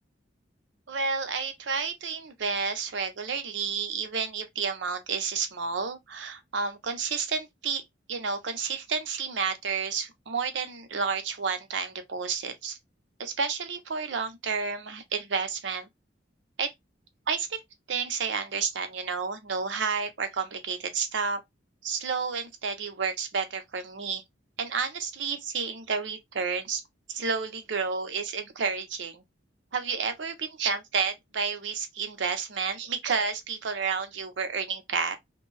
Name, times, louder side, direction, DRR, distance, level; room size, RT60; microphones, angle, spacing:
voice 1, 0.9-7.8 8.1-12.8 13.2-15.9 16.6-16.7 17.3-17.6 17.9-21.4 21.8-24.2 24.6-26.8 27.1-29.2 29.7-35.2, right 5 dB, 75° right, 0.6 m, -30 dB
2.6 x 2.2 x 3.1 m
head